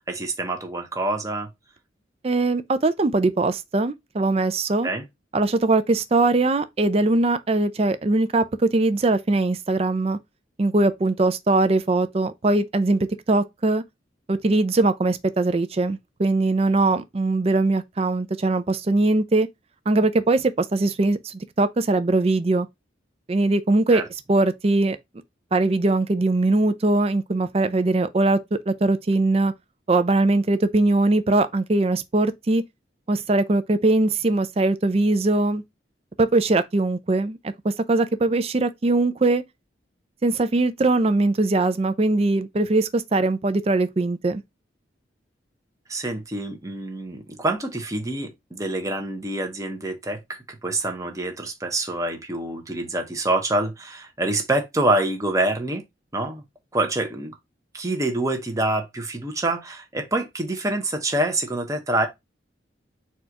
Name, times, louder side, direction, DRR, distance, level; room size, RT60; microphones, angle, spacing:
voice 1, 0.1-1.5 4.8-5.0 23.9-24.0 45.9-55.8 56.1-56.4 56.7-57.3 57.7-62.1, right 2 dB, 20° right, 0.9 m, -26 dB
voice 2, 2.2-4.9 5.3-10.2 10.6-13.8 14.3-19.5 19.9-22.7 23.3-24.0 24.3-25.0 25.5-29.5 29.9-32.6 33.1-35.6 36.2-37.4 37.6-39.4 40.2-44.4, right 2 dB, 35° right, 0.4 m, -21 dB
4.3 x 2.4 x 4.4 m
head